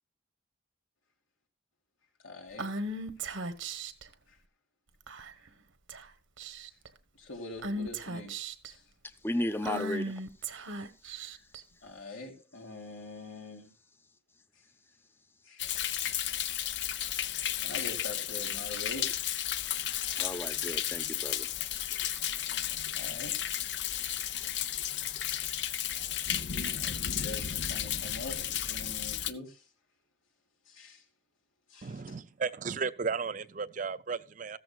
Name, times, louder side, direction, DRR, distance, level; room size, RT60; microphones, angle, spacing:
voice 1, 2.2-2.7 7.2-8.3 8.7-8.8 11.0-11.1 11.8-13.7 15.5-15.6 17.6-19.1 19.7-20.0 22.9-23.3 26.6-29.6 30.7-31.0, left 2 dB, 90° left, 3.3 m, -44 dB
Female speech woman speaking / Whispering, 2.6-4.0 5.1-5.5 5.9-6.1 6.4-6.9 7.6-8.7 9.6-11.6, right 1 dB, 80° right, 1.2 m, -37 dB
voice 2, 9.2-10.1 20.2-21.5 23.0-23.1, left 1 dB, 10° left, 0.6 m, -34 dB
Thunder, 15.6-29.3, left 10 dB, 60° left, 0.6 m, -33 dB
voice 3, 31.8-34.6, right 5 dB, 40° right, 0.5 m, -34 dB
15.0 x 14.0 x 2.4 m
head